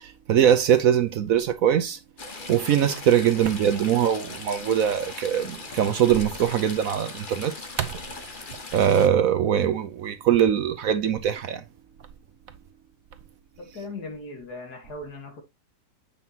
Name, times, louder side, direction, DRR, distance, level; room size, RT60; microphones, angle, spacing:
voice 1, 0.0-2.0 2.5-7.5 7.8-8.0 8.7-11.6, right 9 dB, 65° right, 1.0 m, -22 dB
Stream / Trickle dribble, 2.2-9.1, left 3 dB, 35° left, 1.2 m, -39 dB
voice 2, 13.6-15.4, left 2 dB, 65° left, 2.4 m, -38 dB
8.4 x 5.6 x 2.9 m
omnidirectional pair, 1.8 m